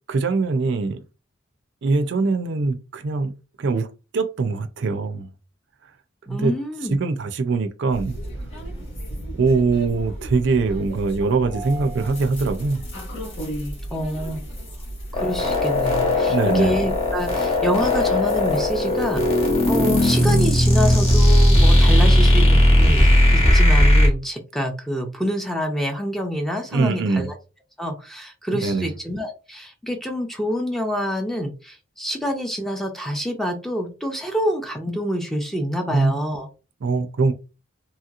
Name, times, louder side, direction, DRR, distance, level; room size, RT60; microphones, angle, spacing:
voice 1, 0.1-1.0 1.8-5.3 6.3-6.5 6.9-8.2 9.3-12.8 16.3-16.7 26.7-27.3 28.6-28.9 35.9-36.5 36.8-37.3, right 4 dB, 65° right, 0.4 m, -22 dB
voice 2, 6.3-7.0 13.9-14.4 15.1-19.2 19.7-27.3 27.8-36.5, equal, ahead, 0.5 m, -27 dB
sound 1, 7.9-20.1, right 1 dB, 65° left, 1.4 m, -34 dB
sound 2, 15.1-24.1, left 1 dB, 30° left, 1.0 m, -16 dB
2.9 x 2.8 x 2.4 m
head